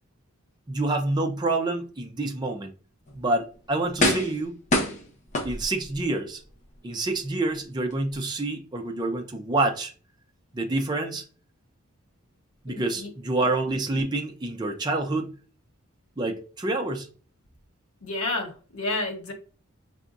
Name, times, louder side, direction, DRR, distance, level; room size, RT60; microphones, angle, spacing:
voice 1, 0.7-2.7 3.2-4.5 5.4-6.4 6.8-9.9 10.5-11.2 12.6-15.3 16.2-17.1, right 2 dB, 20° right, 0.5 m, -27 dB
sound 1, 3.1-3.2 4.0-4.4 4.7-6.0 6.5-6.6, left 1 dB, 35° left, 0.8 m, -25 dB
voice 2, 12.7-13.1 18.0-19.3, left 2 dB, 85° left, 1.3 m, -30 dB
5.0 x 3.4 x 2.5 m
head